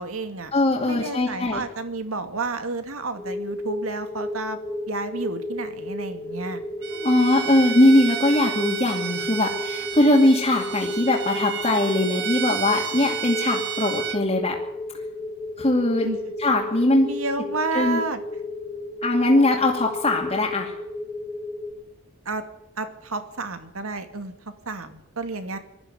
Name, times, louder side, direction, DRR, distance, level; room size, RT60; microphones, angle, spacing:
voice 1, 0.0-0.5 0.8-4.6 4.9-6.6 16.0-16.2 17.0-18.2 22.3-22.4 22.8-24.3 24.7-25.6, right 3 dB, 75° right, 8 dB, 2.4 m, -30 dB
voice 2, 0.5-1.6 6.9-14.6 15.6-16.1 16.4-17.1 17.7-18.0 19.0-20.7, left 1 dB, 30° left, -3 dB, 2.5 m, -21 dB
sound 1, 3.2-21.7, left 1 dB, 5° left, 2.5 m, -33 dB
Bowed string instrument, 6.8-14.2, right 10 dB, 55° right, 1.5 m, -32 dB
21.0 x 13.5 x 9.4 m, 0.85 s
head